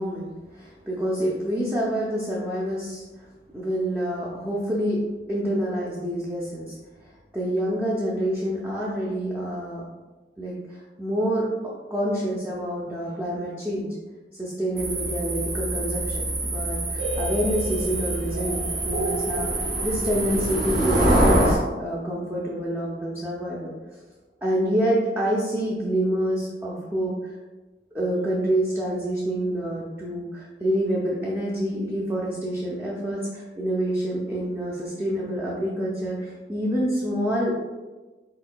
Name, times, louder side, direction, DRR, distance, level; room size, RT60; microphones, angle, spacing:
voice 1, 0.0-3.0 3.5-5.0 5.3-6.8 7.3-9.8 10.4-11.4 11.9-13.9 14.4-23.7 24.4-27.4 27.9-37.5, equal, 10° right, -6 dB, 0.5 m, -27 dB
sound 1, 14.8-21.6, right 1 dB, 50° right, 1.1 m, -25 dB
sound 2, 17.0-22.7, right 1 dB, 80° right, 1.0 m, -35 dB
4.5 x 4.1 x 2.2 m, 1.2 s
head